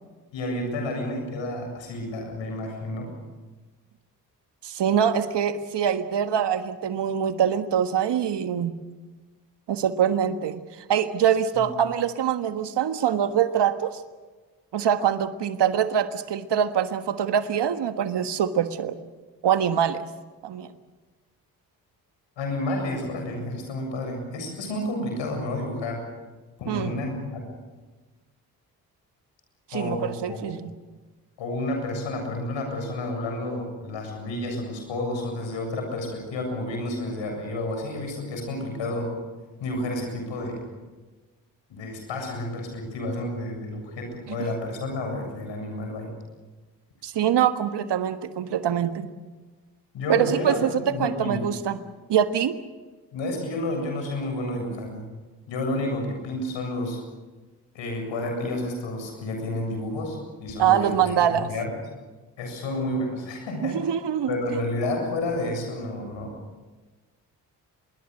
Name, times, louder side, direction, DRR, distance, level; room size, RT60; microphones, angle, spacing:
voice 1, 0.3-3.1 11.5-11.7 22.4-26.0 26.6-27.4 29.7-30.5 31.4-39.1 39.6-40.6 41.7-46.1 49.9-51.4 53.1-55.1 55.5-57.0 57.7-61.7 62.4-63.8 64.3-66.3, left 1 dB, 75° left, 3 dB, 7.7 m, -30 dB
voice 2, 4.6-8.7 9.7-10.6 10.9-14.0 14.7-19.0 19.4-20.0 20.4-20.7 26.7-26.9 29.7-30.7 44.4-44.5 47.0-49.1 50.1-50.7 51.0-51.8 52.1-52.5 60.6-61.5 63.6-64.4, right 9 dB, 65° right, 10 dB, 1.6 m, -24 dB
25.0 x 22.0 x 6.6 m, 1.3 s
hypercardioid pair, 40°, 45 cm